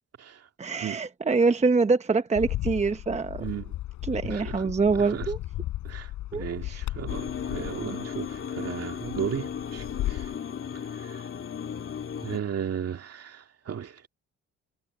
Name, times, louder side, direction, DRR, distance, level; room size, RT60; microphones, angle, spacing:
voice 1, 0.6-3.4 4.1-5.4 6.3-6.8 7.8-8.0, right 4 dB, 20° right, 0.9 m, -25 dB
Bird, 2.4-10.3, left 15 dB, 90° left, 4.2 m, -35 dB
voice 2, 3.4-3.8 4.2-5.3 5.8-10.3 11.0-11.2 12.2-14.1, right 8 dB, 55° right, 2.4 m, -35 dB
sound 1, 7.1-12.4, left 7 dB, 45° left, 2.4 m, -35 dB
cardioid pair, 90°, 30 cm